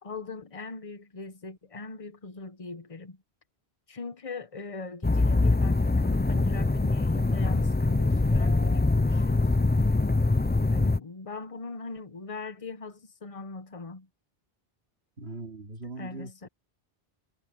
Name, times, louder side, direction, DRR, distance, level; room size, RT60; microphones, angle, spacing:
voice 1, 0.0-3.2 3.9-9.7 10.7-14.1 16.0-16.5, left 3 dB, 35° left, 1.1 m, -41 dB
sound 1, 5.0-11.0, left 2 dB, 20° left, 0.3 m, -23 dB
voice 2, 15.2-16.5, right 3 dB, 80° right, 3.2 m, -40 dB
omnidirectional pair, 1.0 m